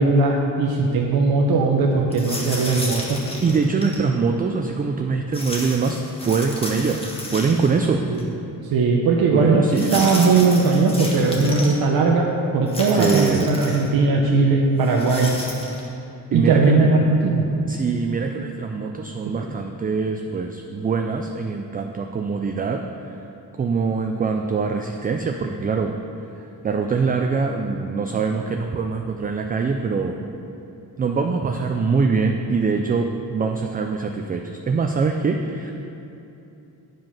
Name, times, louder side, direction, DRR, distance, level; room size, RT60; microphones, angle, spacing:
voice 1, 0.0-3.2 8.1-8.2 8.7-12.3 12.5-15.3 16.3-17.4, right 3 dB, 85° right, -1 dB, 0.8 m, -18 dB
sound 1, 2.1-4.0 5.3-7.9 8.2-8.3 9.7-11.8 12.7-13.9 14.8-15.9, left 1 dB, 15° left, 1.2 m, -32 dB
voice 2, 3.4-6.0 6.2-7.0 7.3-8.0 9.3-9.9 12.9-13.4 16.3-16.9 17.7-22.8 23.6-25.9 26.6-30.2 31.0-35.7, right 5 dB, 25° right, 4 dB, 0.3 m, -23 dB
9.1 x 5.2 x 5.6 m, 2.8 s
cardioid pair, 140°, 35 cm